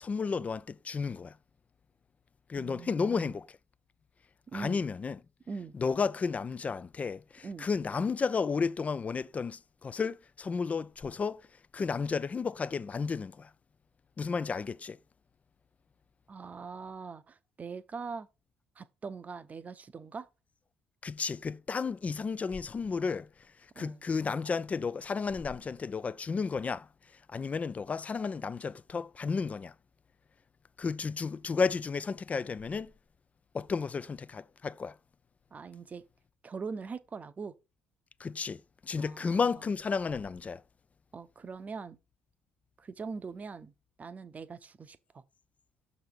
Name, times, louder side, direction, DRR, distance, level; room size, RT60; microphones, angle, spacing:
voice 1, 0.0-1.3 2.5-3.5 4.5-5.2 5.7-11.5 11.7-13.5 14.2-15.0 21.0-23.3 23.8-26.9 27.3-29.7 30.8-32.9 33.5-34.9 38.2-40.6, left 5 dB, 30° left, 0.4 m, -32 dB
voice 2, 2.6-3.4 4.5-4.8 5.5-5.8 7.4-7.7 16.3-18.3 18.8-20.3 23.7-24.0 35.5-36.0 36.4-37.5 39.0-39.6 41.1-42.0 42.8-43.7 44.0-45.2, right 5 dB, 35° right, 0.7 m, -42 dB
6.7 x 4.1 x 6.6 m
figure-of-eight pair, 45°, 5 cm